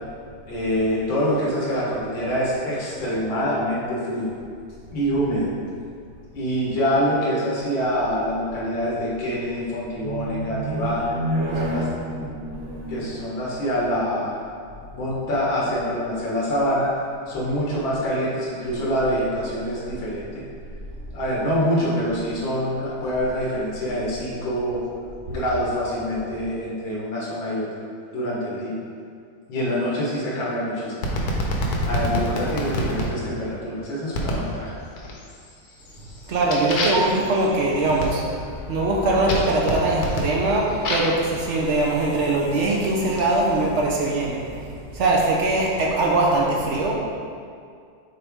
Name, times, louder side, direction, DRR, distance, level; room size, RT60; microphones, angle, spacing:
voice 1, 0.5-4.3 4.9-5.5 6.3-11.1 11.5-11.9 12.9-14.4 14.9-16.9 17.3-20.4 21.1-24.8 25.3-27.7 28.1-28.8 29.5-31.0 31.8-34.8, equal, 90° left, -6 dB, 2.1 m, -25 dB
voice 2, 10.0-13.3 36.2-38.2 38.7-47.0, right 2 dB, 70° right, -2 dB, 0.6 m, -22 dB
sound 1, 31.0-33.1 34.1-34.5 35.0-35.4 35.8-41.2 42.0-43.2, left 1 dB, 60° left, 1.2 m, -28 dB
6.6 x 4.1 x 3.5 m, 2.3 s
omnidirectional pair, 2.0 m